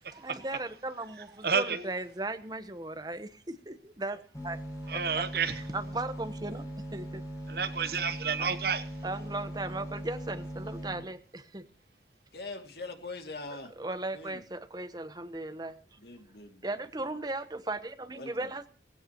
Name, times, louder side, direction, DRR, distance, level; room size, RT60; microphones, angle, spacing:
voice 1, 0.1-4.6 4.9-7.2 8.4-8.5 9.0-11.7 13.8-15.8 16.6-18.7, right 2 dB, 20° right, 1.0 m, -37 dB
voice 2, 1.4-1.9 4.9-5.6 7.5-8.8, right 6 dB, 55° right, 1.0 m, -30 dB
sound 1, 4.3-10.9, right 1 dB, 20° left, 7.5 m, -40 dB
voice 3, 12.3-13.7 14.1-14.4 16.0-17.1 18.2-18.5, left 3 dB, 60° left, 2.4 m, -43 dB
18.5 x 16.0 x 3.0 m
head